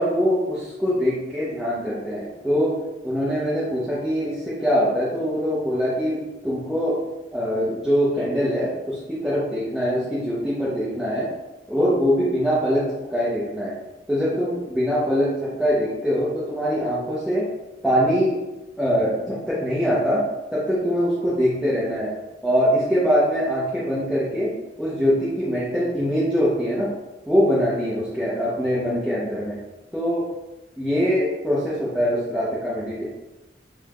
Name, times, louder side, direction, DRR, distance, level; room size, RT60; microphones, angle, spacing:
voice 1, 0.0-7.0 7.3-11.3 11.7-13.8 14.1-17.5 17.8-18.4 18.8-22.1 22.4-27.0 27.3-29.6 29.9-30.3 30.8-33.1, equal, ahead, -10 dB, 0.5 m, -23 dB
3.5 x 2.1 x 3.3 m, 1.0 s
head